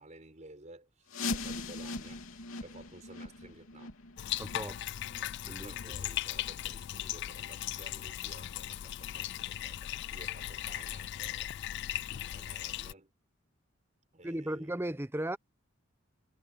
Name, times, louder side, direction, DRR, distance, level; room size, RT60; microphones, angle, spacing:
voice 1, 0.0-4.0 4.6-4.9 5.6-11.5 12.3-13.1 14.1-14.7, right 2 dB, 35° right, 6.2 m, -54 dB
sound 1, 1.1-6.7 7.0-7.1 7.7-7.8 8.4-8.5 9.0-9.1, left 3 dB, 85° left, 3.0 m, -41 dB
Bathtub (filling or washing), 4.2-12.9, left 13 dB, 55° left, 0.3 m, -38 dB
voice 2, 4.4-4.7 5.5-5.7 14.2-15.4, right 1 dB, 10° right, 0.7 m, -35 dB
head